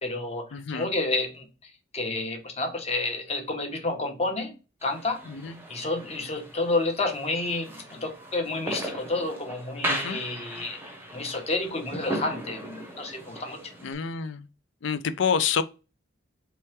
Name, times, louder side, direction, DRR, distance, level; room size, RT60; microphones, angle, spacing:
voice 1, 0.0-4.5 4.8-5.3 5.7-10.8 11.1-13.7, left 2 dB, 35° left, 0.9 m, -30 dB
voice 2, 0.5-0.9 5.4-5.6 9.9-10.2 13.8-14.4 14.8-15.6, left 6 dB, 75° left, 0.4 m, -27 dB
sound 1, 4.8-13.9, right 1 dB, 10° right, 0.7 m, -37 dB
3.3 x 3.1 x 4.5 m
head